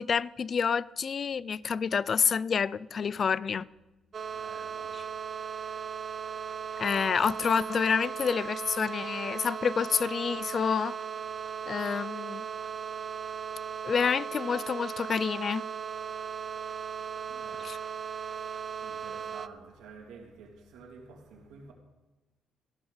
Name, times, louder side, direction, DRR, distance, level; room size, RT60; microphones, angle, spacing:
voice 1, 0.0-3.7 6.8-11.0 11.7-12.4 13.8-15.6 17.6-17.8, left 6 dB, 45° left, 0.3 m, -28 dB
sound 1, 4.1-19.5, right 7 dB, 45° right, 0.5 m, -37 dB
voice 2, 4.3-5.1 5.6-6.8 13.1-13.7 16.6-17.9 18.2-21.7, right 4 dB, 85° right, 2.5 m, -52 dB
14.0 x 12.0 x 4.0 m
cardioid pair, 90°, 0 cm